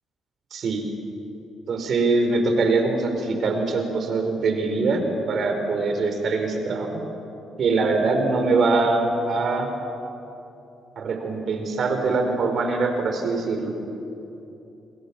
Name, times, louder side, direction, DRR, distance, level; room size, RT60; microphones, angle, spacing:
voice 1, 0.5-0.9 1.7-7.0 7.6-9.7 11.0-13.7, right 3 dB, 60° right, 4 dB, 4.8 m, -23 dB
29.0 x 20.5 x 7.3 m, 2.9 s
cardioid pair, 90°, 0 cm